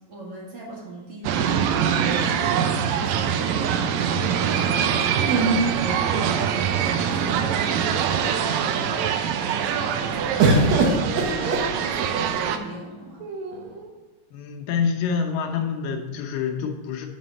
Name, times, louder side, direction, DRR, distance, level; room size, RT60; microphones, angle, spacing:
voice 1, 0.1-1.6 1.9-2.7 3.0-13.2, right 1 dB, 50° right, -5 dB, 2.5 m, -39 dB
sound 1, 1.2-12.6, right 8 dB, 90° right, 1.5 m, -24 dB
sound 2, 2.1-3.2 5.2-6.7 7.5-7.6 7.8-8.4 10.4-12.3 13.2-13.9, right 3 dB, 65° right, 2.0 m, -25 dB
voice 2, 14.3-17.1, left 6 dB, 85° left, 2 dB, 2.6 m, -26 dB
7.9 x 4.1 x 6.5 m, 1.2 s
omnidirectional pair, 3.8 m